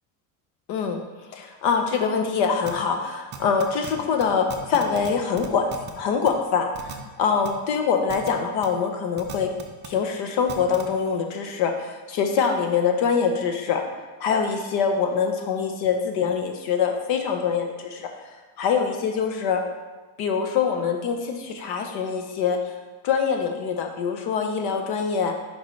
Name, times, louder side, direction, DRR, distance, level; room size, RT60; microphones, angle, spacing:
voice 1, 0.7-1.0 1.3-5.7 5.9-9.5 9.8-13.8 14.2-18.1 18.6-19.6 20.2-22.6 23.0-25.3, left 6 dB, 60° left, 4 dB, 0.8 m, -24 dB
sound 1, 2.7-2.8 3.3-3.9 4.2-4.3 4.5-5.1 5.4-5.9 6.3-6.4 6.7-6.9 7.4-7.5 8.1-8.3 8.6-8.7 9.2-9.9 10.5-10.8, right 8 dB, 25° right, 0.4 m, -36 dB
6.4 x 4.7 x 3.1 m, 1.2 s
cardioid pair, 140°, 46 cm